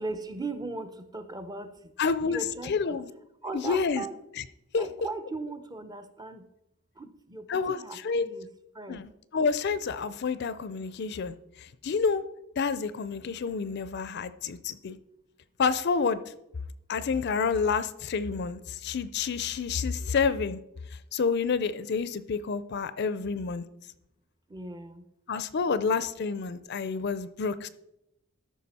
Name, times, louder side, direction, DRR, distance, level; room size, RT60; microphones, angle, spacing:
voice 1, 0.0-1.7 2.2-3.0 3.4-4.2 4.8-6.4 7.0-8.5 8.8-9.0 24.5-25.0, right 3 dB, 20° right, 10 dB, 0.6 m, -38 dB
voice 2, 2.0-2.4 2.7-3.1 3.5-4.0 4.7-4.8 7.5-7.8 8.0-8.3 8.9-11.3 11.8-12.2 12.6-15.0 15.6-16.2 16.9-20.6 21.1-23.6 25.3-27.7, left 5 dB, 50° left, 14 dB, 0.5 m, -28 dB
13.0 x 5.7 x 4.2 m, 0.84 s
head